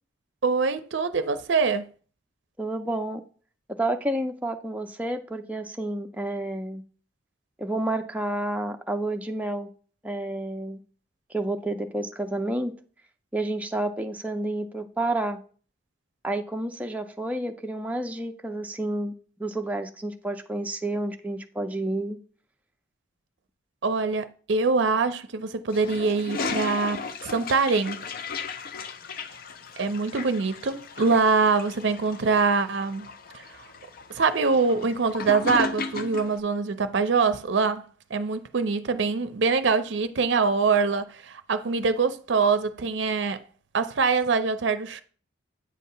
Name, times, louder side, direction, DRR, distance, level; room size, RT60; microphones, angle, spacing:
voice 1, 0.4-1.8 23.8-27.0 27.2-28.0 29.8-33.1 34.1-37.8 38.1-43.4 43.7-45.0, right 4 dB, 60° right, 0.5 m, -24 dB
voice 2, 2.6-3.2 3.8-6.8 7.6-9.7 10.0-10.8 11.3-12.7 13.3-15.4 16.2-19.1 19.4-22.2, right 1 dB, 5° right, 0.4 m, -30 dB
Toilet flush, 25.7-36.4, left 4 dB, 45° left, 0.5 m, -35 dB
8.4 x 2.8 x 5.4 m
head